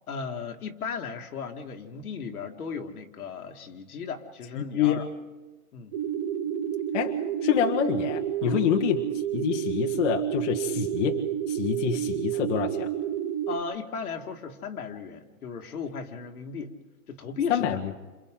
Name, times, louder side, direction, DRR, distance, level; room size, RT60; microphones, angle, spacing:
voice 1, 0.1-5.1 5.7-5.9 8.4-8.8 13.5-16.8 17.1-17.8, left 5 dB, 80° left, 3 dB, 2.6 m, -36 dB
voice 2, 4.5-5.0 6.9-9.0 9.3-12.9 17.5-17.9, left 9 dB, 55° left, 1 dB, 1.7 m, -27 dB
sound 1, 5.9-13.6, right 10 dB, 25° right, 0.8 m, -30 dB
29.5 x 28.0 x 3.9 m, 1.2 s
hypercardioid pair, 155°, 44 cm